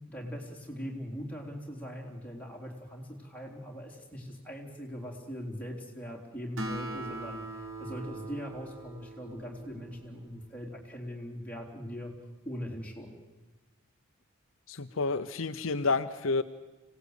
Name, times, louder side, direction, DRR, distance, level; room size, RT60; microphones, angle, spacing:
voice 1, 0.1-7.4 7.8-12.1 12.4-13.2, equal, 5° left, -2 dB, 3.8 m, -41 dB
Acoustic guitar, 6.6-10.3, right 2 dB, 65° right, 3.6 m, -41 dB
voice 2, 14.7-16.4, left 3 dB, 70° left, 9 dB, 0.8 m, -29 dB
25.5 x 18.0 x 8.3 m, 1.1 s
head